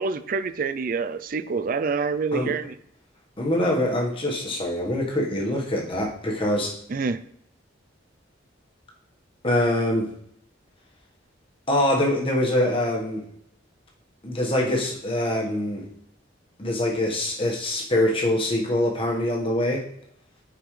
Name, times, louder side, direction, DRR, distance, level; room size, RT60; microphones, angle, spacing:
voice 1, 0.0-2.8 6.9-7.2, right 4 dB, 45° right, 13 dB, 0.4 m, -27 dB
voice 2, 3.4-6.7 9.4-10.1 11.7-13.2 14.2-15.9 16.6-19.9, left 1 dB, 25° left, -1 dB, 1.4 m, -24 dB
9.7 x 5.0 x 3.3 m, 0.72 s
head